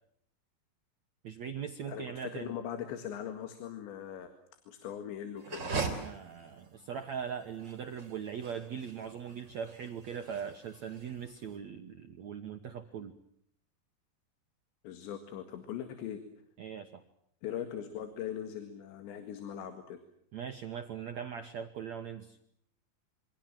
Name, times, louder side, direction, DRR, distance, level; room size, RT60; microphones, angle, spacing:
voice 1, 1.2-2.5 6.0-13.2 16.6-17.0 20.3-22.4, right 7 dB, 70° right, 6 dB, 1.7 m, -40 dB
voice 2, 1.9-4.3 4.7-5.7 14.8-16.2 17.4-20.0, left 9 dB, 85° left, 8 dB, 4.2 m, -40 dB
sound 1, 5.4-11.5, right 4 dB, 25° right, 4.2 m, -40 dB
27.5 x 25.0 x 7.6 m, 0.70 s
omnidirectional pair, 5.0 m